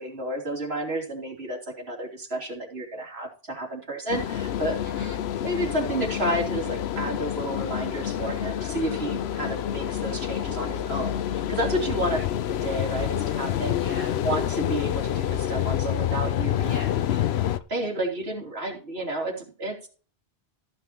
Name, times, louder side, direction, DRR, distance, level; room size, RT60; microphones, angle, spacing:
voice 1, 0.0-4.8 5.4-12.2 12.5-13.8 14.2-16.8 17.7-19.9, right 1 dB, 75° right, 1 dB, 3.2 m, -31 dB
sound 1, 4.1-17.6, left 10 dB, 80° left, 0.9 m, -28 dB
voice 2, 4.8-5.3 12.1-12.3 13.7-14.2 16.7-17.0, equal, 35° left, -3 dB, 5.0 m, -41 dB
14.5 x 6.1 x 4.3 m, 0.37 s
omnidirectional pair, 1.1 m